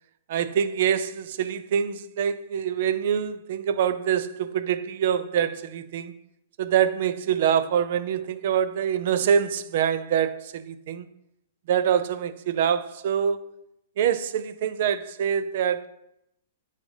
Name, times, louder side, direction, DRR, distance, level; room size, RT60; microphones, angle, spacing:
voice 1, 0.3-6.2 6.6-11.1 11.7-13.6 14.0-15.9, right 8 dB, 60° right, 0.4 m, -25 dB
9.6 x 4.1 x 3.3 m
hypercardioid pair, 140°, 0 cm